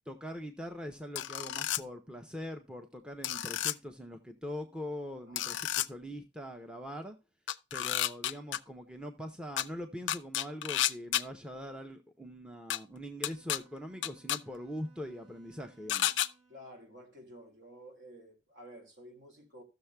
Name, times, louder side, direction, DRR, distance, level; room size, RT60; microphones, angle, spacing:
voice 1, 0.1-7.2 7.7-16.1, equal, 5° right, 0.6 m, -42 dB
sound 1, 1.2-1.8 3.2-3.7 5.4-5.9 7.5-8.6 9.6-9.7 10.1-11.2 12.7-12.8 13.2-13.6 14.0-14.4 15.9-16.3, left 12 dB, 70° left, 0.4 m, -31 dB
voice 2, 5.3-5.6 16.5-19.6, equal, 65° right, 2.1 m, -52 dB
Bowed string instrument, 13.2-16.8, right 4 dB, 20° right, 6.3 m, -64 dB
15.5 x 6.5 x 2.2 m
head